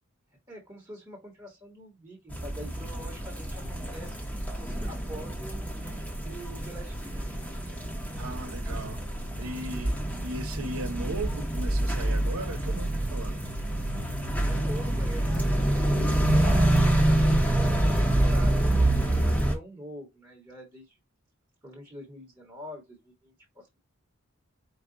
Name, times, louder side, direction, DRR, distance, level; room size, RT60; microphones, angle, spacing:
voice 1, 0.5-6.0 6.2-7.4 14.4-21.0 21.6-23.8, equal, 15° right, 1.1 m, -45 dB
sound 1, 2.3-19.6, right 1 dB, 5° left, 0.9 m, -27 dB
voice 2, 8.2-9.0 9.4-10.0 10.2-13.4, right 2 dB, 85° right, 0.9 m, -37 dB
4.7 x 2.3 x 3.7 m
head